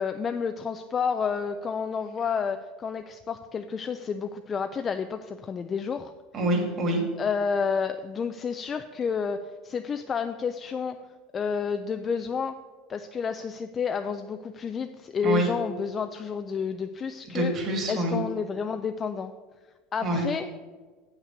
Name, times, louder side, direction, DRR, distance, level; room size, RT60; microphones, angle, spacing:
voice 1, 0.0-6.1 7.2-11.0 11.3-12.6 12.9-17.5 17.9-19.3 19.9-20.5, left 6 dB, 20° left, 8 dB, 0.3 m, -30 dB
voice 2, 6.3-7.0 15.2-15.5 17.3-18.2 20.0-20.2, right 1 dB, 30° right, 1 dB, 2.1 m, -26 dB
8.0 x 5.8 x 6.9 m, 1.4 s
supercardioid pair, 155°, 0 cm